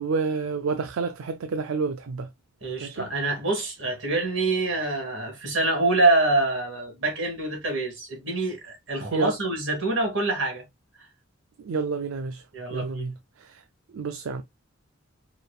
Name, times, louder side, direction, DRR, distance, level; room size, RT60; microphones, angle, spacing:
voice 1, 0.0-2.3 2.8-3.1 9.1-9.3 11.6-12.4 12.7-13.6 13.9-14.4, right 4 dB, 80° right, 0.4 m, -29 dB
voice 2, 2.6-10.6 12.5-13.0, right 2 dB, 60° right, 2.5 m, -25 dB
4.7 x 3.2 x 2.4 m
head